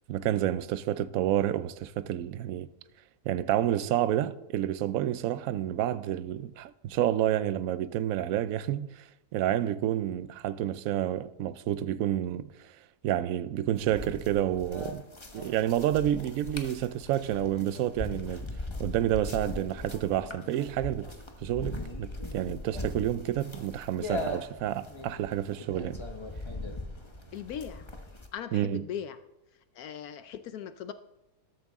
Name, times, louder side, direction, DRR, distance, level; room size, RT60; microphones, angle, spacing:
voice 1, 0.1-2.7 3.3-9.0 9.3-12.5 13.0-15.0 15.3-18.5 18.8-21.1 21.4-26.0 28.5-28.9, right 12 dB, 70° right, 1.0 m, -29 dB
sound 1, 13.8-28.3, left 2 dB, 20° left, 1.1 m, -40 dB
Bass guitar, 21.3-21.6 21.9-24.0 24.3-26.4 26.7-27.6, right 5 dB, 35° right, 5.0 m, -59 dB
voice 2, 27.3-27.9 28.3-29.2 29.7-30.9, left 9 dB, 75° left, 1.1 m, -39 dB
13.5 x 13.0 x 3.6 m
omnidirectional pair, 1.6 m